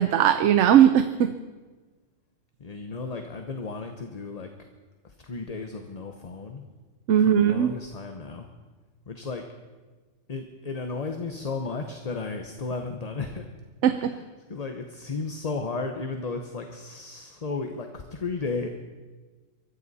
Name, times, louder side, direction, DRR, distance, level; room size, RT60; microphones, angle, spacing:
voice 1, 0.0-1.3 7.1-7.7 13.8-14.2, right 9 dB, 70° right, 10 dB, 0.9 m, -19 dB
voice 2, 2.6-4.5 5.0-6.7 7.3-8.5 9.1-9.4 10.3-13.5 13.9-14.2 14.5-18.7, left 4 dB, 35° left, 5 dB, 0.9 m, -34 dB
23.0 x 14.5 x 4.2 m, 1.3 s
omnidirectional pair, 1.3 m